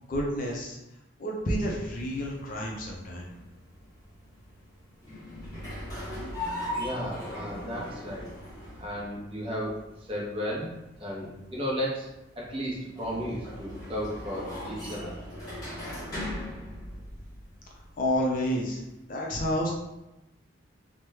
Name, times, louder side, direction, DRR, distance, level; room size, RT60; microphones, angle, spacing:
voice 1, 0.1-0.8 1.2-3.3 18.0-18.8 19.1-19.7, equal, 45° left, -1 dB, 0.5 m, -29 dB
sound 1, 1.9-19.0, left 1 dB, 20° left, 1.0 m, -40 dB
voice 2, 6.8-8.3 8.8-9.7 10.1-10.7 11.0-12.1 12.4-15.1, equal, 25° right, -5 dB, 0.7 m, -34 dB
3.0 x 2.1 x 3.4 m, 0.95 s
head